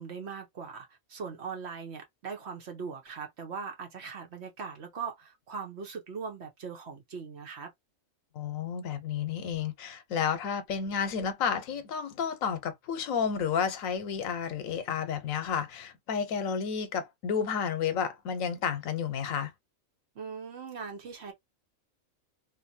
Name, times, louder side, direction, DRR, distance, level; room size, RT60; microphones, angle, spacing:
voice 1, 0.0-7.7 20.1-21.3, right 5 dB, 60° right, 1.0 m, -40 dB
voice 2, 8.3-19.5, left 7 dB, 80° left, 1.1 m, -31 dB
2.6 x 2.6 x 2.6 m
omnidirectional pair, 1.4 m